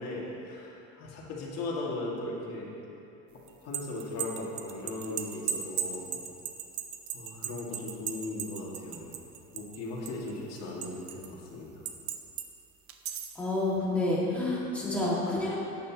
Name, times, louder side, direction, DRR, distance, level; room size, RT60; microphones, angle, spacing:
voice 1, 0.0-2.8 3.6-6.1 7.1-9.1 9.5-11.8, left 2 dB, 50° left, -4 dB, 2.2 m, -37 dB
sound 1, 3.5-9.8 10.1-11.3 11.9-12.5 12.9-13.4, right 9 dB, 45° right, 0.6 m, -36 dB
voice 2, 13.3-15.6, left 2 dB, 5° left, -7 dB, 2.0 m, -29 dB
13.5 x 9.4 x 3.0 m, 2.8 s
cardioid pair, 165°, 33 cm